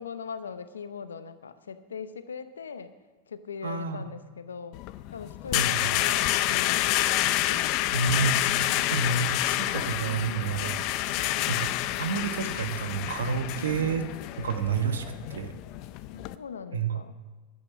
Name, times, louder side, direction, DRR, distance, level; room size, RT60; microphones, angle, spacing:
voice 1, 0.0-3.0 3.3-4.8 5.1-7.1 7.4-7.6 11.1-11.6 13.6-13.9 16.1-17.1, left 6 dB, 90° left, 12 dB, 0.7 m, -40 dB
voice 2, 3.6-4.1 5.5-5.9 7.9-8.4 8.9-10.8 11.5-11.7 12.0-14.1 14.4-15.0 15.3-15.5 16.7-16.9, right 5 dB, 85° right, 8 dB, 1.1 m, -29 dB
sound 1, 4.7-16.3, left 15 dB, 55° left, 0.5 m, -28 dB
11.0 x 8.7 x 7.3 m, 1.3 s
hypercardioid pair, 95°, 0 cm